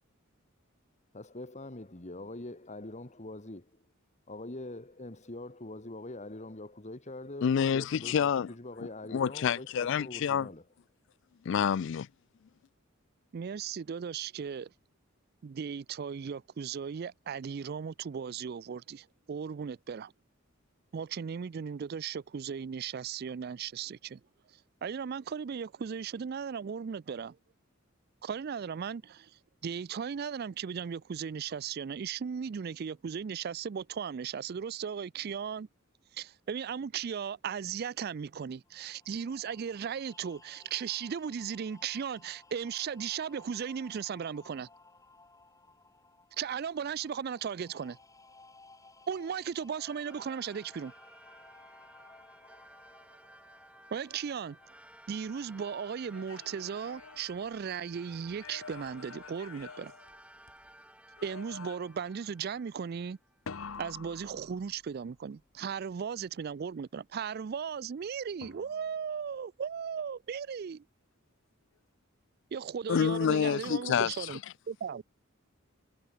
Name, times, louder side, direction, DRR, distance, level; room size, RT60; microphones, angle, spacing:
voice 1, 1.1-3.8 4.3-10.7, left 2 dB, 35° left, 1.6 m, -44 dB
voice 2, 7.4-8.5 9.1-10.5 11.5-12.1 72.9-74.1, left 7 dB, 60° left, 0.3 m, -28 dB
voice 3, 13.3-14.7 15.4-20.1 20.9-24.2 24.8-27.4 28.2-35.7 36.1-44.7 46.4-48.0 49.1-50.9 53.9-54.6 55.1-59.9 61.2-63.2 63.8-70.8 72.5-74.4 74.7-75.0, right 7 dB, 50° right, 0.4 m, -36 dB
sound 1, 38.7-56.0, left 3 dB, 15° left, 5.5 m, -59 dB
sound 2, 49.7-63.5, right 1 dB, 5° right, 1.9 m, -56 dB
sound 3, 55.9-57.8 58.3-60.7 61.2-62.1 63.5-65.1 68.4-69.1, left 5 dB, 80° left, 0.9 m, -48 dB
head